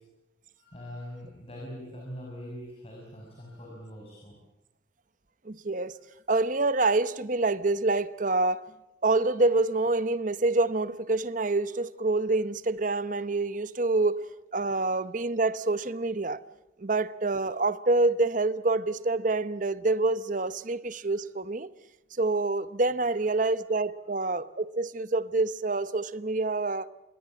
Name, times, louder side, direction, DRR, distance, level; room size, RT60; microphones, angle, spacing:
voice 1, 0.6-4.3 14.7-14.9 20.9-21.0 24.0-24.1, equal, 30° left, 6.0 m, -43 dB
voice 2, 5.4-5.9 6.3-8.6 9.0-14.2 14.5-16.4 16.8-21.7 22.1-26.9, right 2 dB, 40° right, 0.9 m, -27 dB
27.0 x 21.0 x 8.7 m
head